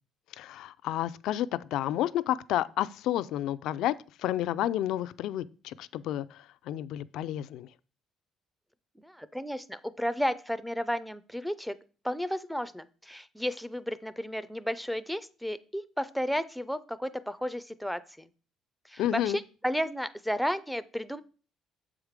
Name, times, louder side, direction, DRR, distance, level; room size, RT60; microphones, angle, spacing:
voice 1, 0.3-7.7 19.0-19.4, left 12 dB, 75° left, 0.4 m, -31 dB
voice 2, 9.0-11.8 12.0-18.3 18.9-21.2, equal, ahead, 0.4 m, -33 dB
7.2 x 4.8 x 5.0 m
cardioid pair, 130°, 0 cm